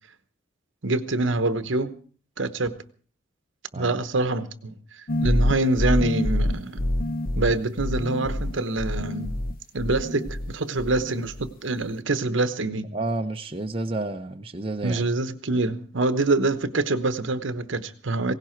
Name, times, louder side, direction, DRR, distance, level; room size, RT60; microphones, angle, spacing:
voice 1, 0.8-1.9 2.4-2.7 3.7-4.8 5.2-6.9 7.4-9.3 9.7-12.9 14.8-18.3, right 2 dB, 70° right, 12 dB, 1.0 m, -25 dB
sound 1, 5.1-10.5 10.8-11.5, left 1 dB, 45° left, 0.7 m, -26 dB
voice 2, 12.9-15.0, right 2 dB, 30° right, 4 dB, 0.7 m, -30 dB
17.5 x 16.5 x 4.5 m, 0.43 s
head